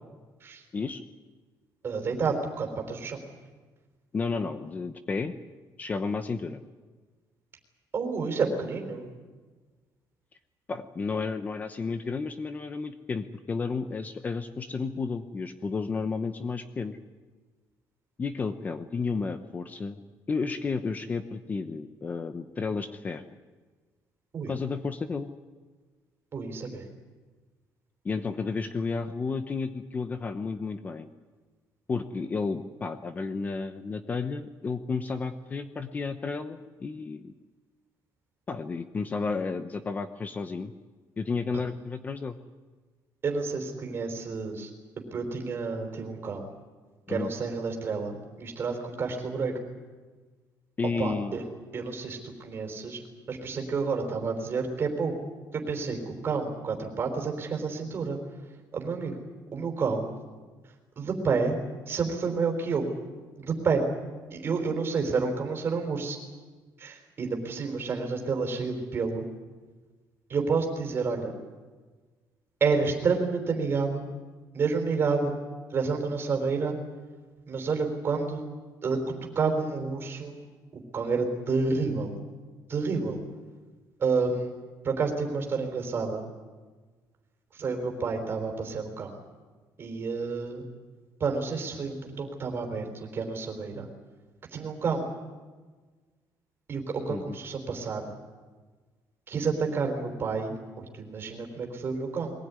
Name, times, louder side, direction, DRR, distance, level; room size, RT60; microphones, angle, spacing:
voice 1, 1.8-3.2 7.9-9.1 24.3-24.5 26.3-26.9 43.2-44.7 45.1-46.5 47.1-49.5 50.8-51.4 51.7-53.0 53.3-55.1 55.5-58.2 58.7-59.2 59.5-60.1 61.0-61.6 61.9-62.9 63.4-63.8 64.3-66.2 66.8-69.2 70.3-71.3 72.6-74.1 74.5-75.4 75.7-76.8 77.5-78.4 78.8-79.0 79.3-80.4 80.7-82.1 82.7-83.2 84.0-84.5 84.8-86.2 87.5-89.2 89.8-90.6 91.2-93.9 94.5-95.1 96.7-98.2 99.3-102.3, right 4 dB, 35° right, 3 dB, 4.2 m, -29 dB
voice 2, 4.1-5.3 5.8-6.6 10.7-17.0 18.2-20.0 20.3-23.2 24.5-25.3 28.0-31.1 31.9-37.3 38.5-40.7 41.2-42.4 47.1-47.3 50.8-51.4 97.1-97.4, left 4 dB, 25° left, 9 dB, 0.9 m, -32 dB
22.5 x 19.0 x 9.7 m, 1.4 s
cardioid pair, 165°, 7 cm